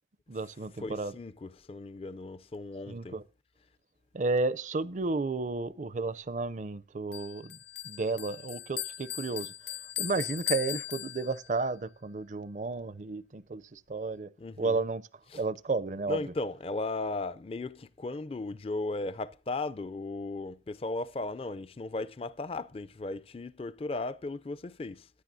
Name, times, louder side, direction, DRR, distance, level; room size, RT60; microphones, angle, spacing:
voice 1, 0.3-1.1 2.9-3.2 4.1-7.6 7.8-9.5 10.0-14.3 14.6-15.0 15.3-16.2, right 3 dB, 45° right, 0.5 m, -32 dB
voice 2, 0.8-3.2 14.4-14.8 15.3-15.4 16.1-25.1, left 2 dB, 30° left, 0.4 m, -36 dB
Bell, 7.1-11.6, left 13 dB, 80° left, 0.6 m, -38 dB
15.0 x 10.0 x 2.7 m
head